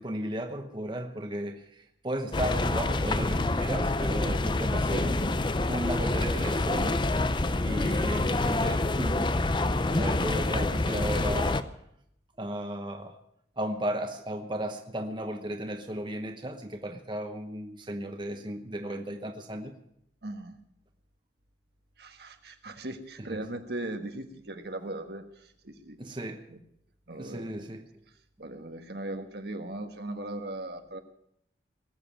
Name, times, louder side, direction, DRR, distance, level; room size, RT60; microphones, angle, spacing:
voice 1, 0.0-5.3 5.7-7.0 7.6-9.3 9.7-11.6 12.4-13.2 13.6-19.8 23.3-23.4 26.0-26.4 27.2-27.8, right 1 dB, 25° right, 5 dB, 1.0 m, -35 dB
sound 1, 2.3-11.6, left 2 dB, 25° left, 0.6 m, -27 dB
voice 2, 20.2-20.6 22.0-26.0 26.5-26.6 27.1-27.7 28.1-31.0, right 1 dB, 65° right, 7 dB, 1.5 m, -39 dB
19.5 x 7.7 x 8.8 m, 0.75 s
head